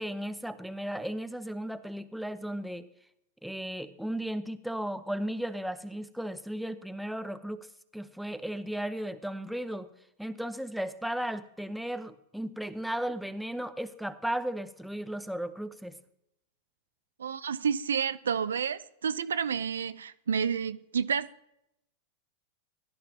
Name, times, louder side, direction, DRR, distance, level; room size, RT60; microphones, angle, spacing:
voice 1, 0.0-2.9 3.4-7.7 7.9-9.9 10.2-16.0, right 1 dB, ahead, 0.7 m, -35 dB
voice 2, 17.2-21.3, right 7 dB, 85° right, 0.5 m, -30 dB
15.5 x 11.0 x 2.8 m
hypercardioid pair, 110°, 0 cm